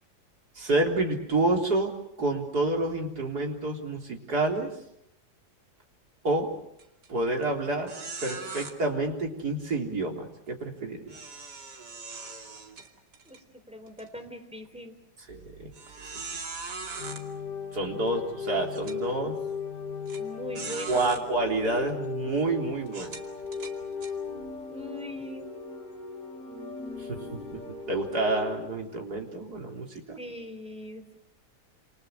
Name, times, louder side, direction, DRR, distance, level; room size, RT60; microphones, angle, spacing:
voice 1, 0.6-1.9 2.2-4.7 6.2-6.5 7.1-7.9 8.2-11.0 15.3-15.7 17.7-19.4 20.9-23.1 27.1-27.6 27.9-30.2, right 2 dB, 70° right, 1 dB, 4.4 m, -28 dB
sound 1, 6.8-7.1 7.4-7.5 7.9-8.7 11.1-13.4 13.9-14.0 14.7-14.8 15.7-17.2 18.1-18.2 18.7-19.0 20.1-20.2 20.6-21.2 21.9-22.1 22.9-24.1, right 4 dB, 85° right, 3.2 m, -40 dB
voice 2, 13.7-14.9 20.2-21.2 24.7-25.5 30.2-31.1, left 1 dB, 5° right, 6 dB, 3.5 m, -40 dB
sound 2, 17.0-28.7, left 5 dB, 60° left, 6.3 m, -37 dB
28.0 x 28.0 x 6.5 m, 0.79 s
omnidirectional pair, 1.8 m